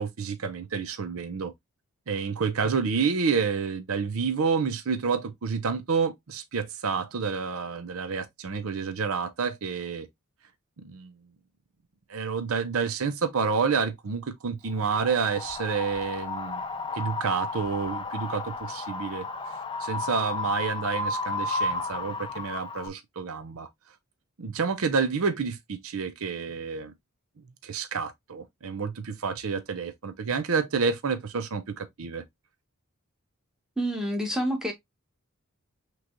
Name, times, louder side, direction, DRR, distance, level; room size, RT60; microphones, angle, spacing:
voice 1, 0.0-1.5 2.1-10.1 10.8-11.1 12.1-16.6 16.9-19.3 19.8-23.7 24.4-26.9 27.6-32.2, right 5 dB, 70° right, 0.6 m, -29 dB
Wind, 14.8-22.9, left 3 dB, 25° left, 0.5 m, -33 dB
voice 2, 33.8-34.7, equal, 5° right, 1.4 m, -28 dB
5.9 x 3.1 x 2.6 m
head